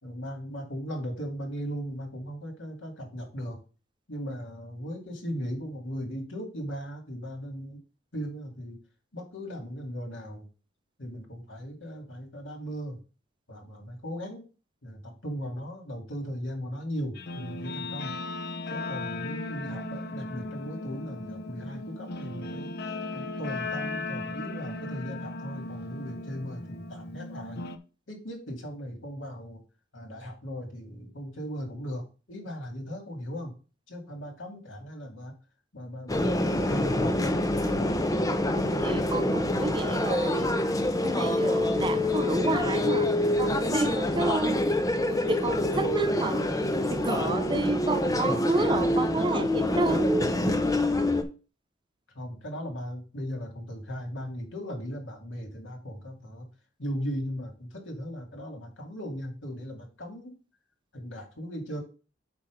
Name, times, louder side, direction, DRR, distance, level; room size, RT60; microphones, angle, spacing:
voice 1, 0.0-3.6 4.1-7.8 8.1-8.8 9.1-10.5 11.0-13.0 13.5-14.5 14.8-18.1 18.7-27.6 28.1-29.6 29.9-33.5 33.9-35.3 35.7-37.2 48.2-48.4 52.1-56.5 56.8-60.3 60.9-61.8, equal, 80° left, 2.6 m, -37 dB
Guitar, 17.1-27.8, left 2 dB, 60° left, 0.7 m, -36 dB
sound 1, 36.1-51.2, left 1 dB, 20° left, 0.7 m, -26 dB
voice 2, 38.2-40.5 41.0-43.1 43.4-44.6 45.1-46.5 46.9-50.3, right 2 dB, 25° right, 0.5 m, -30 dB
8.5 x 3.1 x 6.4 m
head